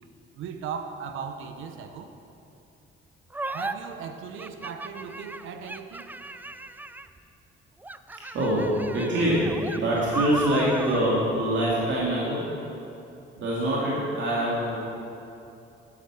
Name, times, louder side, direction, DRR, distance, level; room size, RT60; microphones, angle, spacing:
voice 1, 0.3-2.1 3.5-6.1, right 6 dB, 85° right, 8 dB, 0.9 m, -37 dB
sound 1, 3.3-3.7 4.4-7.2 7.8-11.1, right 2 dB, 10° right, 0.4 m, -36 dB
voice 2, 8.3-12.5 13.4-14.8, right 1 dB, 70° right, -6 dB, 2.7 m, -24 dB
11.5 x 8.3 x 6.2 m, 2.8 s
cardioid pair, 90°, 20 cm